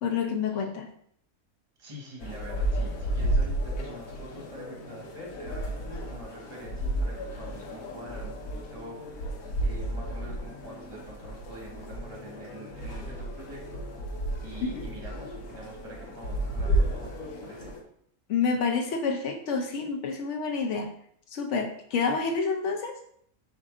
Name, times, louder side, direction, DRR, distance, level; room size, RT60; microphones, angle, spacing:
voice 1, 0.0-0.9 14.6-14.8 18.3-20.9 21.3-22.9, left 5 dB, 60° left, 4 dB, 0.9 m, -28 dB
voice 2, 1.8-13.8 14.4-17.1 17.4-17.7, right 1 dB, 25° right, -2 dB, 1.0 m, -45 dB
sound 1, 2.2-17.8, right 1 dB, 90° left, 1.2 m, -32 dB
4.9 x 2.6 x 3.6 m, 0.67 s
omnidirectional pair, 1.5 m